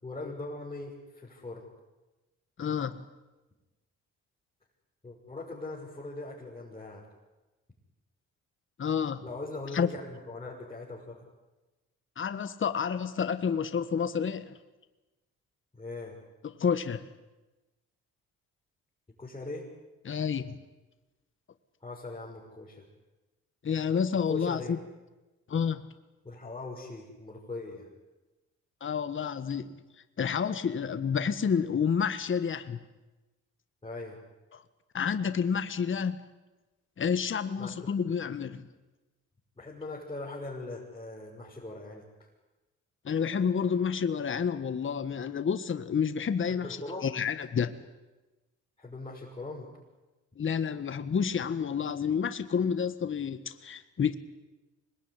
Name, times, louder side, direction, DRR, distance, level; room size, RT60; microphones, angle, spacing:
voice 1, 0.0-1.7 5.0-7.0 9.2-11.2 15.7-16.2 19.2-19.7 21.8-22.8 24.3-24.8 26.2-27.9 33.8-34.2 37.6-37.9 39.6-42.0 46.5-47.1 48.8-49.7, left 2 dB, 20° left, -5 dB, 6.2 m, -40 dB
voice 2, 2.6-3.0 8.8-9.2 9.7-9.9 12.2-14.6 16.6-17.0 20.0-20.6 23.6-24.8 25.5-25.9 28.8-29.8 30.2-32.8 34.5-34.6 34.9-36.2 37.0-38.7 43.0-46.7 47.0-47.8 50.4-54.2, left 7 dB, 40° left, 10 dB, 1.6 m, -29 dB
25.5 x 21.0 x 9.9 m, 1.1 s
cardioid pair, 90°, 30 cm